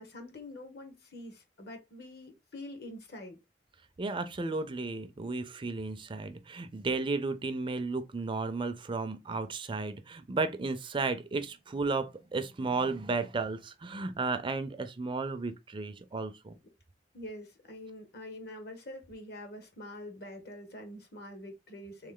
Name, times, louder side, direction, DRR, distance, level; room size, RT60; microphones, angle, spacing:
voice 1, 0.0-3.4 16.6-16.7 17.1-22.1, left 1 dB, 60° left, 1.2 m, -45 dB
voice 2, 4.0-16.5, right 3 dB, 30° right, 0.4 m, -33 dB
3.5 x 3.2 x 3.7 m
head